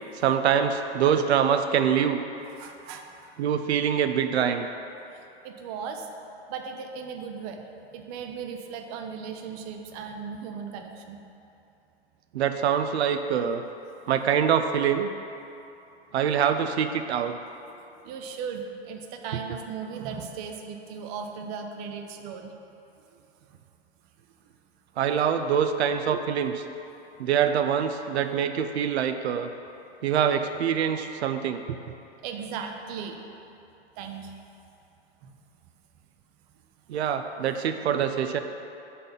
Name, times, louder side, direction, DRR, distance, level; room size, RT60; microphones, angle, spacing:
voice 1, 0.1-2.2 3.4-4.7 12.3-13.6 14.1-15.1 16.1-17.4 25.0-26.6 27.2-29.5 30.0-31.8 36.9-38.4, right 8 dB, 90° right, 7 dB, 0.5 m, -24 dB
voice 2, 2.6-3.3 5.4-6.1 6.5-7.6 7.9-11.2 17.7-22.5 23.1-23.2 32.2-33.2 34.0-34.3 35.2-35.3, right 6 dB, 40° right, 4 dB, 0.5 m, -37 dB
5.6 x 4.2 x 5.2 m, 2.8 s
hypercardioid pair, 130°, 32 cm